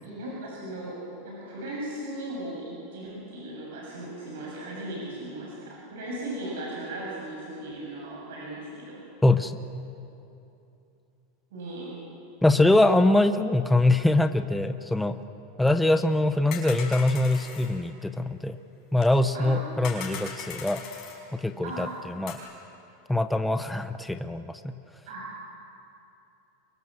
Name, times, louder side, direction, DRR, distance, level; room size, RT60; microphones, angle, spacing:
voice 1, 0.0-9.0 11.5-11.9 19.3-19.9 21.6-21.9 25.0-25.3, right 1 dB, 70° right, -3 dB, 7.0 m, -37 dB
voice 2, 9.2-9.6 12.4-15.2 15.6-18.6 18.9-20.8 21.4-21.9 22.2-22.4 23.1-24.8, left 2 dB, 5° left, 8 dB, 0.6 m, -23 dB
sound 1, 16.5-17.7 19.0-19.1 19.8-21.2 22.3-22.4, left 6 dB, 35° left, 4.8 m, -39 dB
26.0 x 24.0 x 7.7 m, 2.8 s
supercardioid pair, 175°, 0 cm